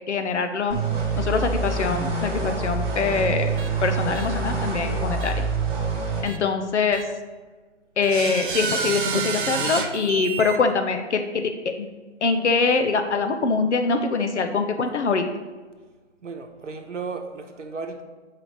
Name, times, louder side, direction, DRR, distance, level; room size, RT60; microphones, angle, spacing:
voice 1, 0.1-0.8 1.2-5.5 6.2-7.1 8.0-11.9 12.2-15.3, left 4 dB, 70° left, 7 dB, 0.8 m, -24 dB
sound 1, 0.7-6.2, right 4 dB, 20° right, 1.1 m, -26 dB
sound 2, 3.6-3.7 4.1-4.3 5.2-5.3 6.3-6.4 6.9-7.0 8.0-10.6, right 5 dB, 45° right, 0.5 m, -28 dB
voice 2, 16.2-18.0, right 4 dB, 80° right, 5 dB, 0.9 m, -35 dB
7.7 x 4.8 x 3.1 m, 1.3 s
figure-of-eight pair, 140°, 36 cm